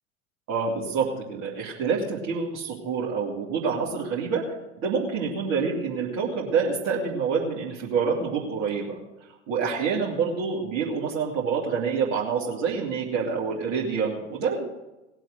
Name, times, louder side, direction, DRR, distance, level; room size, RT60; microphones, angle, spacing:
voice 1, 0.5-4.4 4.8-9.0 9.5-14.7, right 5 dB, 45° right, -5 dB, 2.8 m, -27 dB
18.5 x 7.6 x 7.8 m, 1.0 s
figure-of-eight pair, 75°, 38 cm